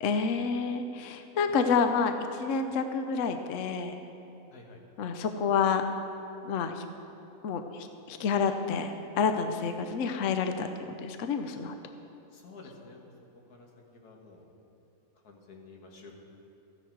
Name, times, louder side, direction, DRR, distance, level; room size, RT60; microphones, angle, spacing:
voice 1, 0.0-3.9 5.0-5.8 6.4-6.8 7.4-10.7 11.0-11.7, left 5 dB, 65° left, 7 dB, 0.9 m, -29 dB
voice 2, 12.3-13.1 13.5-13.7 13.9-14.5 15.2-16.2, left 3 dB, 80° left, 0 dB, 2.0 m, -50 dB
14.0 x 10.0 x 4.6 m, 3.0 s
omnidirectional pair, 1.6 m